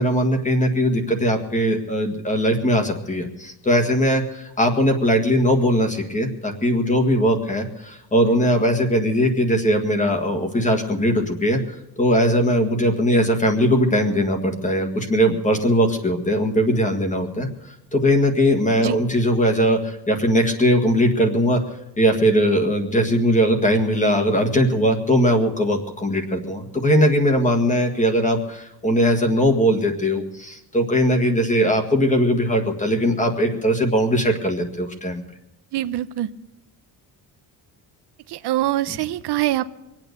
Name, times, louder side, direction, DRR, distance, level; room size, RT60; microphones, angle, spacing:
voice 1, 0.0-11.6 12.0-17.5 17.9-21.6 22.0-35.2, equal, 20° left, 5 dB, 1.7 m, -20 dB
voice 2, 35.7-36.3 38.3-39.8, right 14 dB, 75° right, 12 dB, 0.8 m, -24 dB
23.5 x 9.0 x 6.8 m, 0.92 s
cardioid pair, 170°, 41 cm